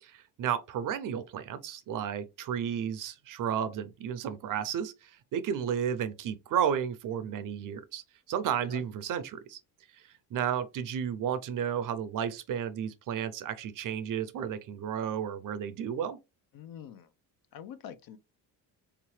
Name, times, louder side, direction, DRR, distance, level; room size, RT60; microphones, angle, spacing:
voice 1, 0.0-8.0 8.3-9.6 10.3-16.2, right 8 dB, 50° right, 0.5 m, -32 dB
voice 2, 16.5-17.1 17.5-18.2, left 9 dB, 55° left, 0.6 m, -45 dB
3.5 x 2.9 x 3.1 m
cardioid pair, 110°, 42 cm